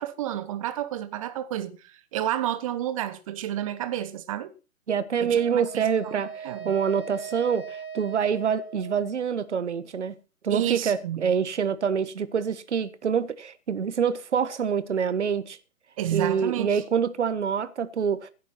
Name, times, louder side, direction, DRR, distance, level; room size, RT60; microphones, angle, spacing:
voice 1, 0.0-4.5 5.2-5.8 6.4-6.7 10.5-11.3 16.0-16.8, right 12 dB, 25° right, 1.1 m, -30 dB
voice 2, 4.9-10.2 10.4-15.6 16.1-18.3, right 7 dB, 50° right, 1.5 m, -26 dB
Wind instrument woodwind instrument, 5.3-9.5, right 6 dB, 85° right, 3.5 m, -40 dB
16.0 x 8.2 x 5.9 m
figure-of-eight pair, 130°, 43 cm